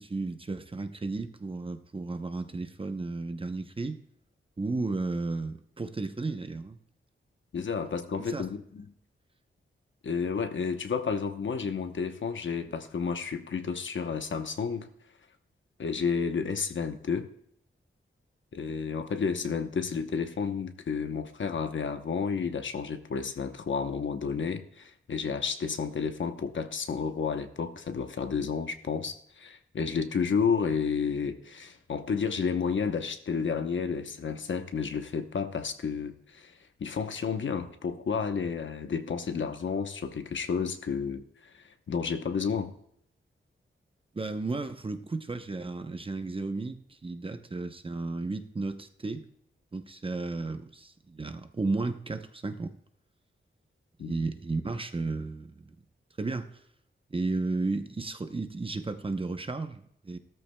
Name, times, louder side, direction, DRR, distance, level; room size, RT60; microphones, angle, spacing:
voice 1, 0.0-4.0 4.6-6.8 8.3-8.5 44.1-49.2 49.7-52.7 54.0-55.6 56.2-56.6 57.1-60.2, right 3 dB, 25° right, 8 dB, 0.7 m, -33 dB
voice 2, 7.5-8.8 10.0-14.9 15.8-17.3 18.5-36.5 36.8-41.2 41.9-42.7 54.0-54.1, left 6 dB, 65° left, 8 dB, 0.9 m, -31 dB
15.5 x 13.5 x 2.2 m, 0.71 s
wide cardioid pair, 135°, 21 cm